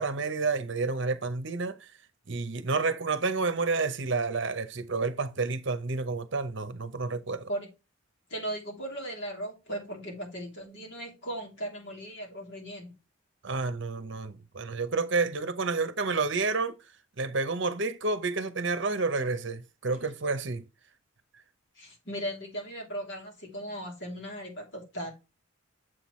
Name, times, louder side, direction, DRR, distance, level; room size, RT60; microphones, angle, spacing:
voice 1, 0.0-1.8 2.3-7.5 13.4-16.7 17.2-20.6, right 3 dB, 60° right, 0.8 m, -30 dB
voice 2, 8.3-12.9 19.9-20.0 21.7-25.1, right 1 dB, 55° left, 3.2 m, -37 dB
7.7 x 5.9 x 3.1 m
head